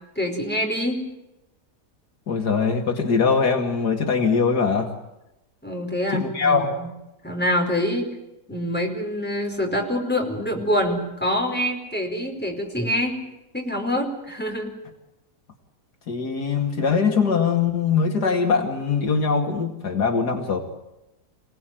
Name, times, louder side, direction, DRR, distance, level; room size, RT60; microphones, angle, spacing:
voice 1, 0.1-1.0 5.6-6.9 7.2-8.1 8.5-13.2 13.5-14.7, equal, 5° left, 1 dB, 4.8 m, -25 dB
voice 2, 2.3-4.9 6.1-6.8 16.1-20.6, left 5 dB, 75° left, 3 dB, 2.8 m, -22 dB
27.0 x 18.0 x 9.3 m, 0.95 s
omnidirectional pair, 1.7 m